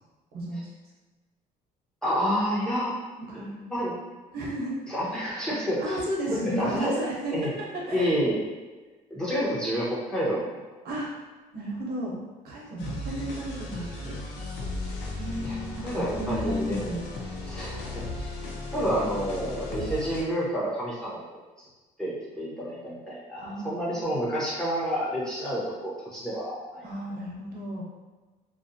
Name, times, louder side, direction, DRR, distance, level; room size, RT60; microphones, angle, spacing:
voice 1, 2.0-3.0 3.3-3.9 4.9-6.0 6.3-6.9 7.3-7.5 7.9-8.4 9.1-10.6 15.4-15.6 15.8-16.9 17.4-18.3 18.7-21.4 22.0-26.8, equal, 5° left, -7 dB, 0.8 m, -29 dB
voice 2, 3.3-3.7 4.3-4.8 5.8-8.1 10.8-11.1 11.5-12.2 12.4-14.2 15.1-17.0 23.3-24.1 26.8-27.8, equal, 70° right, -4 dB, 0.8 m, -33 dB
sound 1, 12.8-20.2, left 2 dB, 85° left, 0.5 m, -36 dB
2.5 x 2.1 x 2.6 m, 1.2 s
cardioid pair, 110°, 17 cm